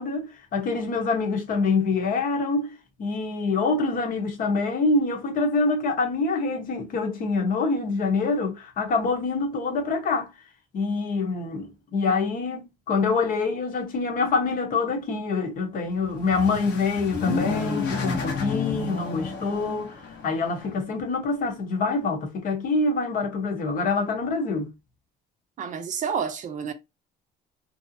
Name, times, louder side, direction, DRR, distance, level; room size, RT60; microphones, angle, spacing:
voice 1, 0.0-2.7 3.0-10.3 10.7-19.9 20.2-24.7, left 3 dB, 55° left, 0.9 m, -25 dB
sound 1, 16.0-20.7, left 5 dB, 90° left, 1.0 m, -31 dB
voice 2, 25.6-26.7, right 6 dB, 50° right, 0.5 m, -29 dB
2.7 x 2.0 x 2.6 m
cardioid pair, 110°, 17 cm